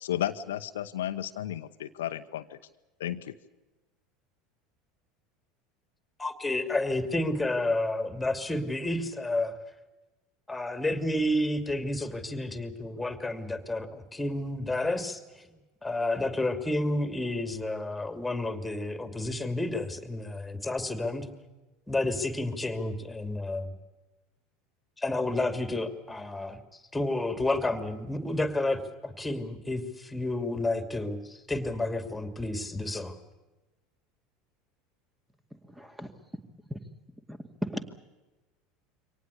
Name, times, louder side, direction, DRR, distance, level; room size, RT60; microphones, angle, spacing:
voice 1, 0.0-2.6 3.0-3.3, left 11 dB, 75° left, 9 dB, 0.9 m, -33 dB
voice 2, 6.2-9.5 10.5-15.2 15.8-21.2 21.9-23.7 25.0-26.6 26.9-31.2 31.5-33.1, left 2 dB, 10° left, 9 dB, 2.8 m, -30 dB
voice 3, 35.6-36.1 36.7-36.8 37.3-37.9, equal, 10° right, 8 dB, 2.3 m, -37 dB
24.5 x 18.5 x 8.3 m, 1.1 s
hypercardioid pair, 75°, 0 cm